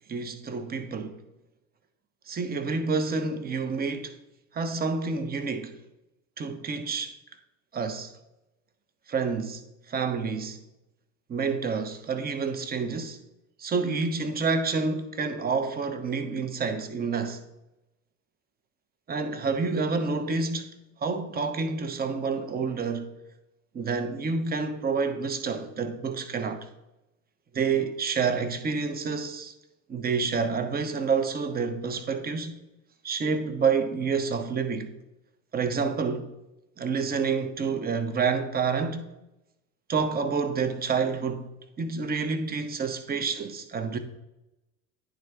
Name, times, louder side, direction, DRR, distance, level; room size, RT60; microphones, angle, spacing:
voice 1, 0.1-1.2 2.3-4.1 4.5-5.8 6.4-7.1 7.7-8.1 9.1-9.6 9.9-10.6 11.3-13.2 13.6-17.4 19.1-23.1 23.7-26.7 27.5-29.5 29.9-32.5 33.0-34.9 35.5-36.3 36.8-39.1 39.9-41.5 41.8-44.0, right 5 dB, 20° right, 0.7 m, -28 dB
10.5 x 3.6 x 3.3 m
figure-of-eight pair, 65°, 44 cm